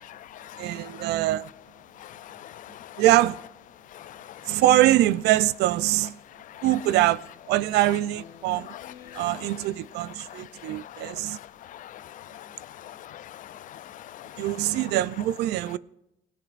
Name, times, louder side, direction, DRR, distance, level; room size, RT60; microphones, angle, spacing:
voice 1, 0.0-1.1 1.9-3.0 3.8-4.6 6.3-6.7 8.6-9.6 10.2-14.9, left 12 dB, 50° left, 0.4 m, -44 dB
voice 2, 0.6-1.5 3.0-3.4 4.5-6.2 6.6-7.2 7.5-8.7 9.1-11.4 14.4-15.8, right 14 dB, 80° right, 0.5 m, -23 dB
Speech synthesizer, 7.2-10.2, left 9 dB, 85° left, 0.9 m, -51 dB
20.0 x 17.0 x 2.5 m
cardioid pair, 110°, 17 cm